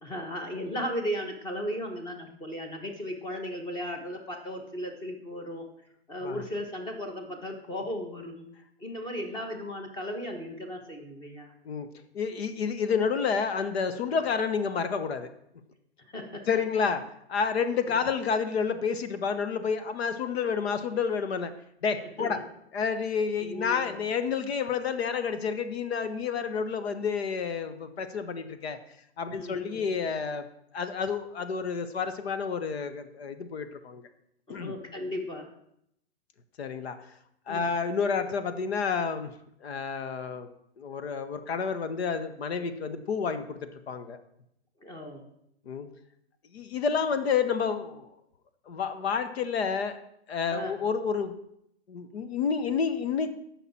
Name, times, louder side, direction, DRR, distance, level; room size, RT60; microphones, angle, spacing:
voice 1, 0.0-5.6 6.1-8.5 8.8-11.5 16.0-16.5 17.9-18.0 22.2-22.4 23.4-23.9 29.3-29.9 34.5-35.5 37.5-37.7 44.8-45.3 50.5-50.7, equal, 15° left, 4 dB, 1.3 m, -36 dB
voice 2, 12.1-15.3 16.5-17.0 17.3-21.5 21.8-22.4 22.7-28.8 29.2-30.4 30.7-34.0 34.5-34.7 36.6-37.0 37.5-39.3 39.6-40.5 40.8-44.2 45.7-45.9 46.5-48.1 48.7-50.0 50.3-51.3 51.9-53.3, left 6 dB, 65° left, 11 dB, 1.1 m, -29 dB
15.5 x 5.9 x 4.2 m, 0.75 s
hypercardioid pair, 150°, 33 cm